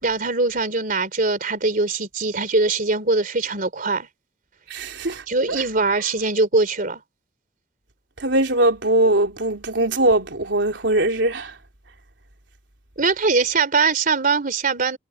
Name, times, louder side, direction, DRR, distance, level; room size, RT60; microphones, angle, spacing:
voice 1, 0.0-4.1 5.3-7.0 13.0-15.0, right 3 dB, 50° right, 3.4 m, -22 dB
voice 2, 4.7-5.6 8.2-11.6, right 1 dB, 85° right, 3.5 m, -21 dB
head